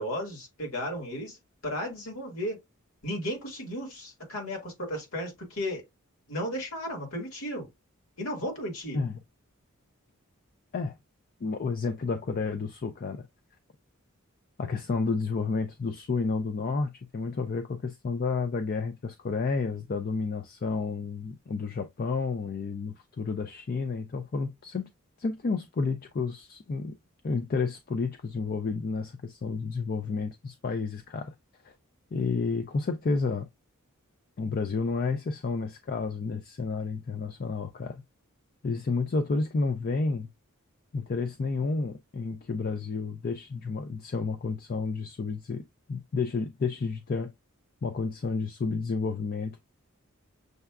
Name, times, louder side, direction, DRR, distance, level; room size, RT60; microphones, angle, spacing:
voice 1, 0.0-2.6 3.0-5.8 6.3-7.7 8.2-9.0, equal, 70° left, 1.8 m, -34 dB
voice 2, 11.4-13.3 14.6-24.9 25.2-27.0 27.2-31.3 31.6-31.7 32.1-33.5 34.4-38.0 38.6-40.3 40.9-45.6 45.9-47.3 47.8-49.6, left 4 dB, 45° left, 0.4 m, -31 dB
6.5 x 2.3 x 2.3 m
head